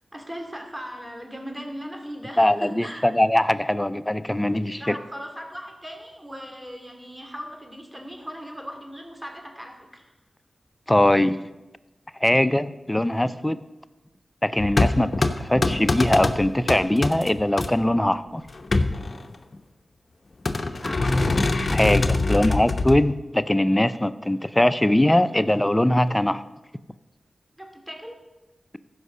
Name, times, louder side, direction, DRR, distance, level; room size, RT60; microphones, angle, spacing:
voice 1, 0.1-3.1 4.8-10.1 20.7-21.3 22.1-22.6 27.6-28.2, equal, 15° right, 3 dB, 2.6 m, -38 dB
voice 2, 2.4-5.0 10.9-11.5 12.2-13.6 14.4-18.4 21.7-26.4, left 1 dB, 15° left, 13 dB, 0.6 m, -21 dB
sound 1, 14.6-17.7 18.5-19.6 20.5-23.1, left 2 dB, 55° left, 0.8 m, -23 dB
14.5 x 5.5 x 6.7 m, 1.1 s
cardioid pair, 40°, 0 cm